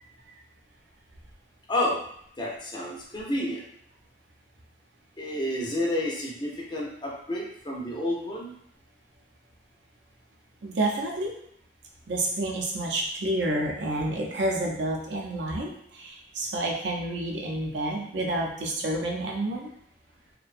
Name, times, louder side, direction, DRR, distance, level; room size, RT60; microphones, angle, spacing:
voice 1, 1.7-2.0 2.4-3.6 5.2-8.5, left 1 dB, 25° left, -3 dB, 0.4 m, -30 dB
voice 2, 10.6-11.3 12.1-19.7, right 1 dB, 80° right, -1 dB, 0.5 m, -29 dB
2.5 x 2.2 x 2.4 m, 0.67 s
head